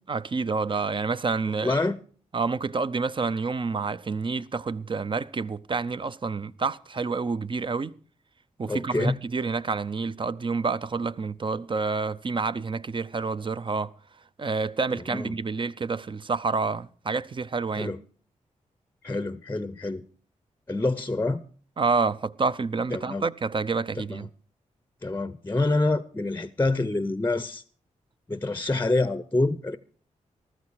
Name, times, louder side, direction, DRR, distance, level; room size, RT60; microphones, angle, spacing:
voice 1, 0.1-1.8 2.3-7.9 8.6-13.9 14.4-17.9 21.8-24.3, right 4 dB, 40° right, 0.6 m, -28 dB
voice 2, 1.6-2.0 8.7-9.2 15.1-15.3 17.7-18.0 19.0-20.1 20.7-21.4 22.9-23.2 24.1-24.3 25.0-27.6 28.3-29.8, left 2 dB, 15° left, 0.6 m, -26 dB
14.0 x 13.0 x 4.7 m
cardioid pair, 60°, 13 cm